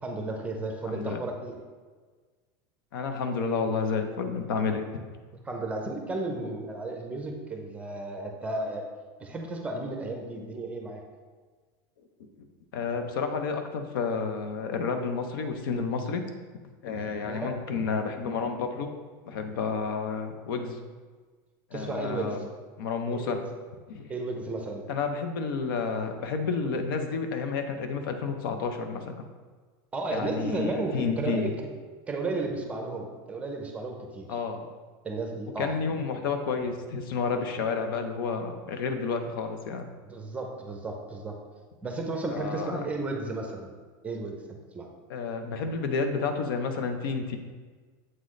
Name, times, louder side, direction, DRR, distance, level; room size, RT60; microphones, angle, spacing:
voice 1, 0.0-1.6 4.6-4.7 5.5-8.9 9.2-11.0 17.0-17.6 21.7-22.4 23.1-23.4 24.1-24.9 29.9-31.7 32.1-34.3 35.0-35.7 40.0-41.4 41.8-43.7 44.0-44.9, right 2 dB, 10° right, 2 dB, 0.7 m, -33 dB
voice 2, 0.8-1.2 2.9-4.8 5.9-6.0 12.7-16.2 16.8-18.9 19.3-20.8 21.7-22.4 22.8-23.4 23.9-24.1 24.9-29.1 30.1-31.5 34.3-34.7 35.6-39.8 42.3-42.9 45.1-47.4, left 5 dB, 85° left, 6 dB, 0.7 m, -30 dB
7.7 x 3.9 x 3.2 m, 1.4 s
supercardioid pair, 155°, 11 cm